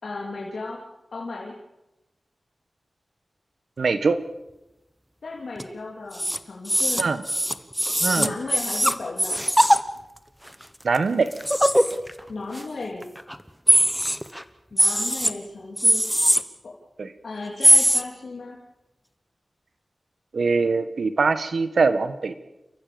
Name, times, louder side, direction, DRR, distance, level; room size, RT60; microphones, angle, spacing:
voice 1, 0.0-0.8 1.1-1.5 5.2-7.1 8.2-9.4 12.3-13.1 14.7-16.0 16.6-16.7 17.2-18.6, left 3 dB, 80° left, -2 dB, 3.3 m, -35 dB
voice 2, 3.8-4.2 7.0-7.2 8.0-8.3 10.8-11.3 17.0-17.1 20.3-22.3, right 4 dB, 80° right, 11 dB, 1.5 m, -22 dB
sound 1, 5.6-5.7 6.1-6.4 6.6-9.8 10.5-10.6 10.9-11.0 11.3-12.2 12.5-12.6 13.0-13.4 13.7-14.4 14.8-15.3 15.8-16.4 17.6-18.0, equal, ahead, 1.1 m, -20 dB
30.0 x 14.5 x 7.0 m, 0.96 s
wide cardioid pair, 85°, 0 cm